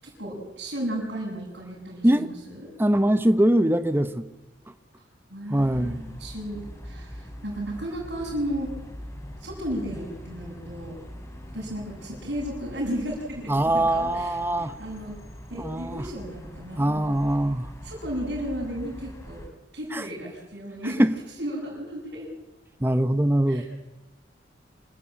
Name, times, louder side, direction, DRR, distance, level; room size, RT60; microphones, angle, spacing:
voice 1, 0.0-2.7 5.3-8.7 9.4-11.0 11.5-15.2 15.5-17.0 17.8-19.4 19.7-21.1 21.4-22.3 23.5-23.6, equal, 65° right, -4 dB, 7.1 m, -34 dB
voice 2, 2.8-4.2 5.5-6.0 13.5-14.7 15.5-16.0 16.8-17.7 19.9-20.0 21.0-21.1 22.8-23.6, right 1 dB, 10° right, 11 dB, 0.9 m, -22 dB
sound 1, 5.6-19.5, equal, 15° left, 3.8 m, -42 dB
26.5 x 14.5 x 8.7 m, 1.1 s
head